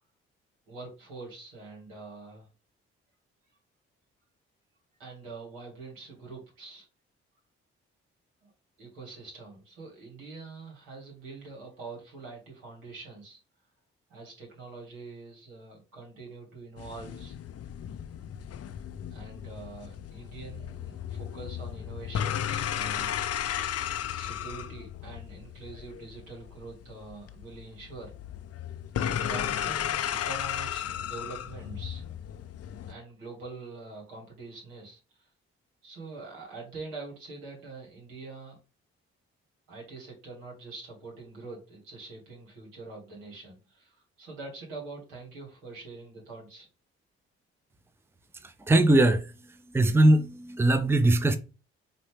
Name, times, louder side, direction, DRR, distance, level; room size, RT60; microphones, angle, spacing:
voice 1, 0.7-2.5 5.0-6.9 8.4-8.5 8.8-13.4 14.1-17.4 19.1-23.1 24.1-28.1 29.0-32.1 32.9-35.3 35.8-38.6 39.7-46.7, right 3 dB, 85° right, 2.1 m, -44 dB
sound 1, 16.8-32.9, left 9 dB, 50° left, 0.6 m, -35 dB
voice 2, 48.4-49.3 49.7-51.4, right 1 dB, 10° right, 0.6 m, -21 dB
5.2 x 2.8 x 3.3 m
hypercardioid pair, 45°, 31 cm